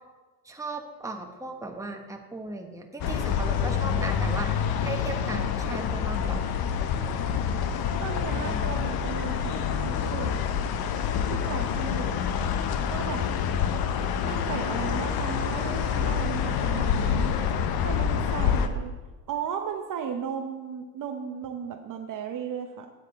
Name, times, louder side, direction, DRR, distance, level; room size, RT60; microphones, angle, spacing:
voice 1, 0.4-6.5 8.4-8.6, right 2 dB, 5° right, 3 dB, 1.2 m, -37 dB
sound 1, 3.0-18.7, left 7 dB, 50° left, 0.9 m, -27 dB
voice 2, 8.0-10.4 11.3-12.4 12.9-13.3 14.2-17.4 17.8-18.9 19.3-22.9, right 7 dB, 40° right, 5 dB, 0.8 m, -35 dB
9.2 x 8.1 x 4.1 m, 1.3 s
supercardioid pair, 85°, 47 cm